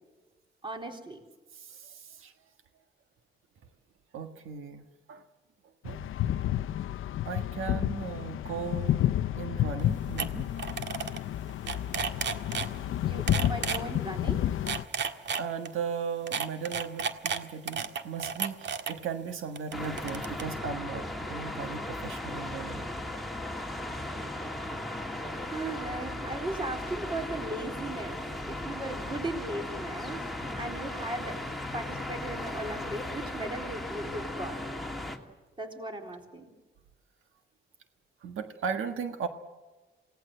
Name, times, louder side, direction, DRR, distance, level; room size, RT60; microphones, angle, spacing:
voice 1, 0.6-1.2 12.6-14.6 24.2-24.5 25.5-28.2 28.5-30.2 30.5-31.4 31.7-34.6 35.6-36.5, right 2 dB, 25° right, 3 dB, 4.0 m, -37 dB
voice 2, 1.5-2.3 4.1-5.2 5.8-6.1 7.2-9.1 9.3-10.4 15.4-22.9 38.2-39.3, right 6 dB, 80° right, 7 dB, 1.6 m, -37 dB
sound 1, 5.9-14.8, left 12 dB, 80° left, 0.7 m, -30 dB
sound 2, 9.8-9.9 10.2-10.3 10.6-11.2 11.5-12.7 13.3-13.8 14.5-15.7 16.3-18.9 19.6-20.4, right 6 dB, 60° right, 1.7 m, -32 dB
sound 3, 19.7-35.2, left 1 dB, ahead, 2.6 m, -37 dB
28.0 x 18.0 x 7.9 m, 1.3 s
cardioid pair, 125°, 21 cm